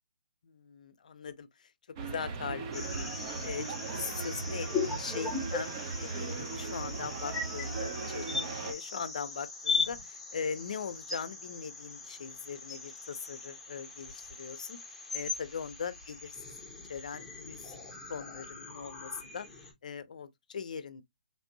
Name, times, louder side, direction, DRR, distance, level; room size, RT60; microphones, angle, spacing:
voice 1, 0.4-1.7 2.0-14.8 15.1-16.6 16.9-17.8 18.1-19.5 19.8-21.0, left 6 dB, 60° left, 0.5 m, -40 dB
sound 1, 2.0-8.7, right 4 dB, 30° right, 0.6 m, -38 dB
sound 2, 2.7-19.7, left 4 dB, 5° left, 0.9 m, -39 dB
3.3 x 2.6 x 2.6 m
hypercardioid pair, 155°, 5 cm